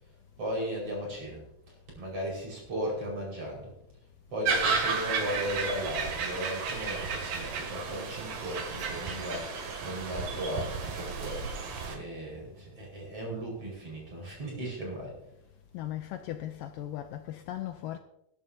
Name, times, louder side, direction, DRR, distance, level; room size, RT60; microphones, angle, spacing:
voice 1, 0.4-1.4 2.0-3.7 4.3-11.4 11.9-15.2, equal, 40° right, 6.1 m, -36 dB
sound 1, 4.5-12.0, right 5 dB, 65° right, 3.3 m, -33 dB
voice 2, 15.7-18.0, left 12 dB, 80° left, 2.1 m, -37 dB
21.0 x 11.0 x 2.8 m
omnidirectional pair, 4.4 m